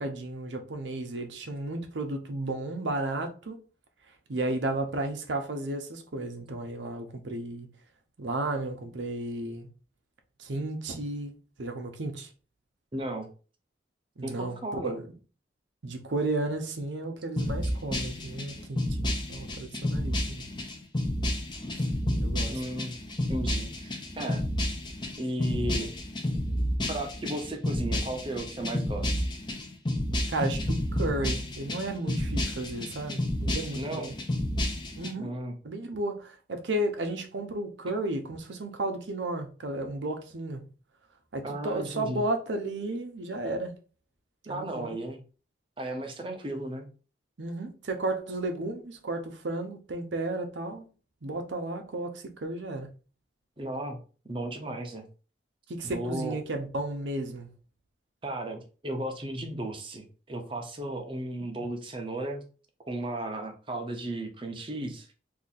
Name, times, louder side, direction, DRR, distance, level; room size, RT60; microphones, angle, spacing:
voice 1, 0.0-3.6 4.3-7.7 8.2-9.7 10.4-12.3 14.2-15.1 15.8-19.0 19.3-20.5 22.2-22.5 30.3-34.1 35.0-35.3 35.6-40.7 41.3-43.7 44.5-44.9 47.4-50.9 51.2-52.9 55.7-57.5, right 2 dB, 75° right, 0.7 m, -33 dB
voice 2, 12.9-13.3 14.2-15.0 22.5-22.9 23.3-24.4 25.2-25.9 26.9-29.3 33.7-34.1 35.2-35.6 41.4-42.2 44.4-45.2 45.8-46.9 53.6-54.0 54.2-55.0 55.8-56.4 58.2-62.5 62.9-65.1, right 1 dB, 25° right, 0.6 m, -35 dB
sound 1, 17.4-35.1, left 1 dB, 25° left, 0.5 m, -31 dB
2.7 x 2.6 x 4.0 m
head